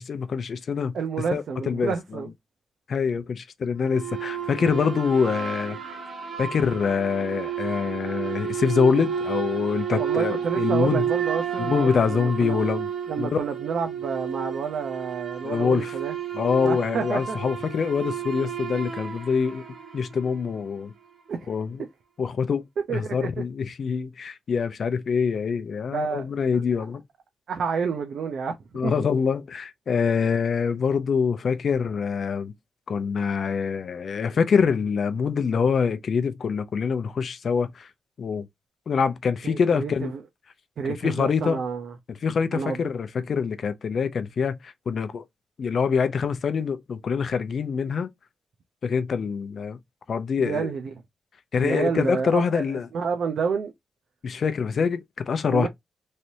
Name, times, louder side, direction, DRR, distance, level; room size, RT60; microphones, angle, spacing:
voice 1, 0.0-0.9 1.3-2.2 2.9-5.8 6.4-11.0 11.6-12.9 13.2-13.4 15.4-15.9 16.3-19.6 19.9-20.9 21.5-21.7 22.2-22.6 22.9-27.0 28.7-32.5 32.9-37.9 38.2-38.5 38.9-40.1 41.0-41.6 42.2-45.2 45.6-48.1 48.8-49.8 50.1-50.7 51.5-52.9 54.2-55.7, left 6 dB, 55° left, 0.5 m, -25 dB
voice 2, 0.9-2.3 9.9-12.6 13.1-16.2 16.6-17.4 21.3-21.5 22.9-23.3 25.9-26.9 27.5-28.5 28.8-28.9 39.4-40.2 40.8-41.9 42.5-42.8 50.4-51.0 51.6-53.7 55.5-55.7, right 6 dB, 70° right, 0.5 m, -29 dB
sound 1, 3.9-20.5, right 8 dB, 45° right, 1.1 m, -31 dB
3.2 x 2.6 x 2.8 m
wide cardioid pair, 120°, 0 cm